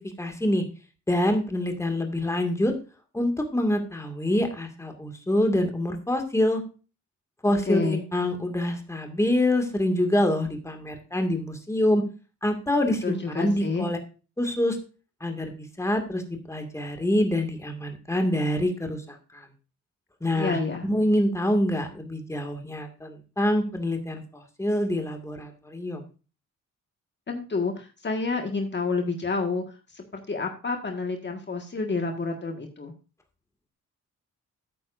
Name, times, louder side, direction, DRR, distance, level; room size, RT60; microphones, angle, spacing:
voice 1, 0.2-0.6 1.1-2.7 3.1-6.6 7.4-12.0 12.4-14.0 14.4-14.8 15.2-16.2 16.5-19.5 20.2-26.0, left 1 dB, 10° left, 4 dB, 2.1 m, -26 dB
voice 2, 7.7-8.1 13.0-13.9 20.3-20.9 27.3-29.6 29.9-32.9, left 4 dB, 35° left, 3 dB, 1.8 m, -29 dB
13.0 x 9.4 x 2.6 m, 0.33 s
cardioid pair, 105°, 29 cm